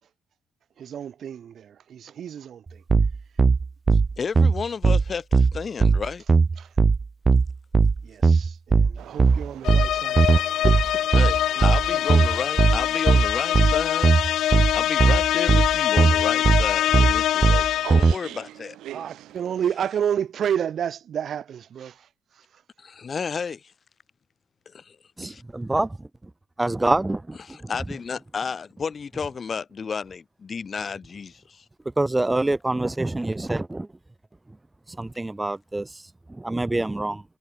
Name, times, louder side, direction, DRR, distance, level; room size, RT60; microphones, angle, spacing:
voice 1, 0.8-2.8 6.6-6.7 8.0-11.0 11.6-12.0 18.9-22.0, right 9 dB, 60° right, 2.5 m, -31 dB
sound 1, 2.9-18.1, right 4 dB, 30° right, 1.2 m, -19 dB
voice 2, 4.2-6.2 11.1-14.2 14.5-18.8 22.8-23.6 24.7-25.0 25.2-25.4 27.4-31.6, left 5 dB, 40° left, 2.7 m, -32 dB
sound 2, 9.0-19.8, right 14 dB, 85° right, 7.8 m, -45 dB
sound 3, 9.6-18.2, left 12 dB, 80° left, 1.3 m, -24 dB
voice 3, 25.2-26.0 26.6-27.7 32.0-33.9 35.0-35.9 36.3-37.2, right 2 dB, 15° right, 0.8 m, -26 dB
cardioid pair, 90°, 0 cm